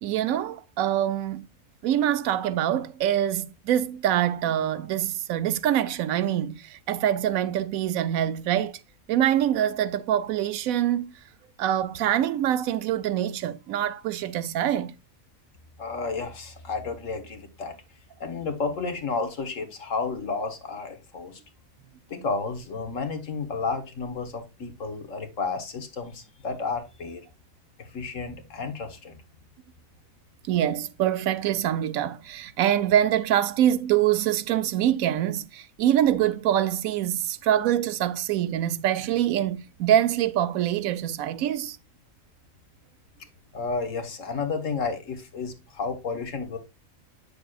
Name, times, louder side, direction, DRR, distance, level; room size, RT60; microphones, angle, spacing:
voice 1, 0.0-1.4 1.8-8.7 9.1-11.1 11.6-14.9 30.5-41.8, right 11 dB, 85° right, 1.0 m, -25 dB
voice 2, 15.8-17.7 18.2-21.4 22.1-27.2 27.8-29.2 43.5-46.6, left 4 dB, 65° left, 1.7 m, -32 dB
8.1 x 6.8 x 2.4 m
omnidirectional pair, 1.4 m